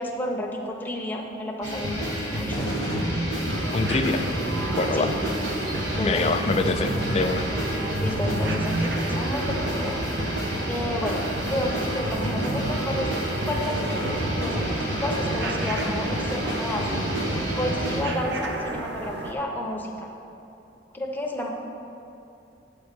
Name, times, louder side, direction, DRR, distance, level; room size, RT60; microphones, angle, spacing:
voice 1, 0.0-2.8 4.9-5.1 5.9-6.2 8.0-10.0 10.7-13.1 13.4-16.9 17.6-20.1 20.9-21.5, left 1 dB, 10° left, 0 dB, 0.8 m, -31 dB
sound 1, 1.6-18.0, equal, 80° right, 1.4 m, -28 dB
sound 2, 3.5-19.3, right 3 dB, 65° right, 0.7 m, -33 dB
voice 2, 3.7-4.2 4.7-5.1 6.0-7.5, left 3 dB, 35° left, 7 dB, 0.4 m, -24 dB
7.9 x 4.4 x 6.8 m, 2.7 s
head